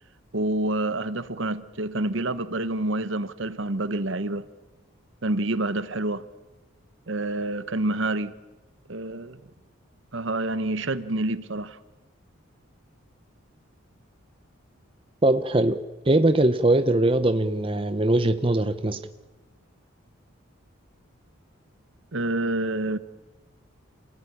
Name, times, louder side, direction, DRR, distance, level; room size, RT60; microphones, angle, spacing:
voice 1, 0.3-4.5 5.2-6.2 7.1-8.3 8.9-9.4 10.1-11.8 22.1-23.0, right 2 dB, 60° right, 1.1 m, -27 dB
voice 2, 15.2-19.0, right 1 dB, 25° right, 0.8 m, -21 dB
28.0 x 18.0 x 10.0 m
head